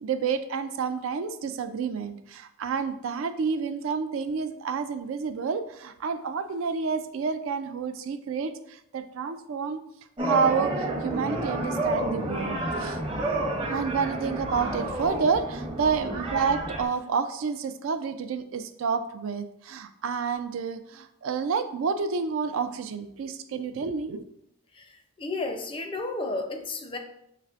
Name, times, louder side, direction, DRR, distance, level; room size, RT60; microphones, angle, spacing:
voice 1, 0.0-9.8 10.2-13.0 13.7-24.2, right 5 dB, 70° right, 10 dB, 0.3 m, -29 dB
sound 1, 10.2-16.8, right 1 dB, 25° right, 0.8 m, -30 dB
voice 2, 24.7-27.0, left 2 dB, 25° left, 5 dB, 0.4 m, -33 dB
5.7 x 3.2 x 2.4 m, 0.76 s
head